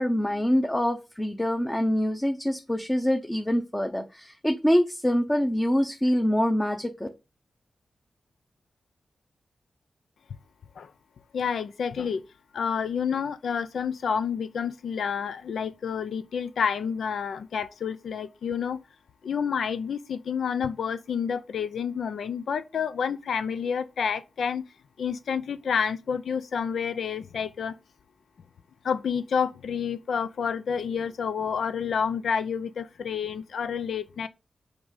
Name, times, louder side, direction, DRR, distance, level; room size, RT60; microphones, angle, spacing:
voice 1, 0.0-7.1, equal, 10° left, 0.9 m, -25 dB
voice 2, 11.3-12.2 12.5-18.8 19.2-24.6 25.0-27.7 28.8-34.3, left 7 dB, 85° left, 0.6 m, -29 dB
6.1 x 5.1 x 6.5 m
wide cardioid pair, 110°, 0 cm